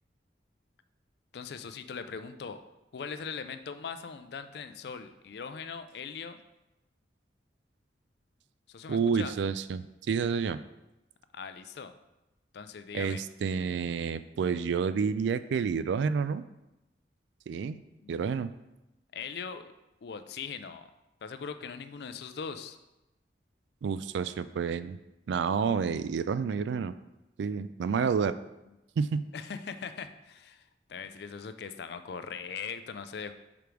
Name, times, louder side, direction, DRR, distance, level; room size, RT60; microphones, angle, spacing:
voice 1, 1.3-2.6 2.9-6.4 8.7-9.3 11.3-11.9 12.5-13.2 18.0-18.1 19.1-19.7 20.0-20.9 21.2-22.8 27.9-28.0 29.3-30.6 30.9-33.3, left 6 dB, 65° left, 11 dB, 0.4 m, -40 dB
voice 2, 8.9-10.6 12.9-16.4 17.5-17.8 18.1-18.5 23.8-25.0 25.3-26.9 27.4-28.4 29.0-29.3, right 6 dB, 75° right, 14 dB, 0.3 m, -29 dB
5.0 x 5.0 x 4.5 m, 0.97 s
head